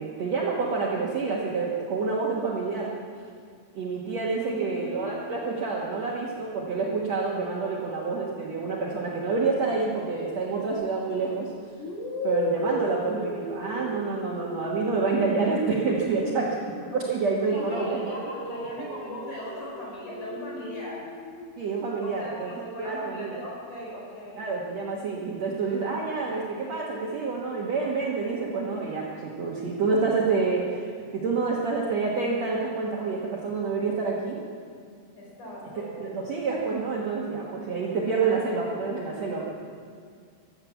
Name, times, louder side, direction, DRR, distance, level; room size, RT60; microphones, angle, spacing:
voice 1, 0.0-2.9 3.7-11.5 12.2-16.5 16.9-18.1 21.6-22.5 22.8-23.3 24.4-34.4 36.0-39.5, right 4 dB, 55° right, -4 dB, 2.1 m, -28 dB
voice 2, 4.5-5.1 17.5-21.0 22.0-24.5 35.2-36.0, left 1 dB, 50° left, -4 dB, 5.8 m, -39 dB
sound 1, 10.7-11.0 11.8-17.1 17.5-21.5, left 2 dB, 85° left, 4.3 m, -36 dB
16.0 x 12.0 x 7.2 m, 2.2 s
omnidirectional pair, 4.7 m